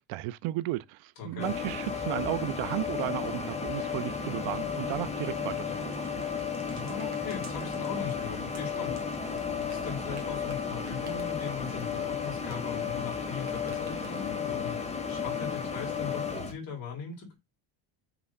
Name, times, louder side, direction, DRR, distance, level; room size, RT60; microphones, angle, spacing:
voice 1, 0.0-6.1, right 18 dB, 75° right, 0.6 m, -34 dB
voice 2, 1.2-1.5 6.7-17.3, left 6 dB, 45° left, 3.0 m, -40 dB
sound 1, 1.4-16.5, left 6 dB, 15° left, 0.9 m, -33 dB
sound 2, 5.4-13.1 13.4-14.4, right 5 dB, 35° right, 1.6 m, -53 dB
6.1 x 3.3 x 5.3 m
cardioid pair, 155°, 49 cm